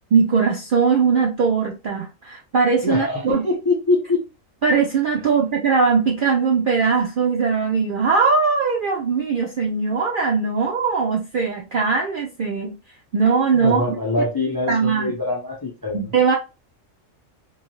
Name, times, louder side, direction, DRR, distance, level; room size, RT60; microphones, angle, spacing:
voice 1, 0.1-3.4 4.6-12.7 13.1-14.0 14.7-15.1 15.9-16.3, right 5 dB, 65° right, 0.5 m, -20 dB
voice 2, 2.8-4.2 13.5-16.2, left 2 dB, 30° left, 0.4 m, -23 dB
2.6 x 2.3 x 2.9 m
omnidirectional pair, 1.4 m